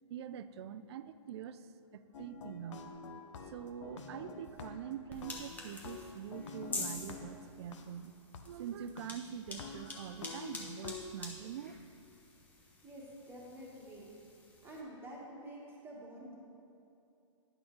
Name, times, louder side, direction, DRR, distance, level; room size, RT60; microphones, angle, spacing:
voice 1, 0.1-1.7 1.9-2.8 3.5-8.1 8.4-11.8, right 9 dB, 55° right, 13 dB, 0.4 m, -44 dB
sound 1, 2.1-4.9 5.2-7.8 8.3-8.4 9.0-9.1 9.5-11.1, left 4 dB, 65° left, 0.8 m, -47 dB
sound 2, 5.1-14.8, left 2 dB, 10° left, 0.9 m, -47 dB
voice 2, 12.8-14.1 14.6-16.3, right 1 dB, 15° right, -4 dB, 1.3 m, -48 dB
9.9 x 6.1 x 3.8 m, 2.7 s
hypercardioid pair, 140°, 17 cm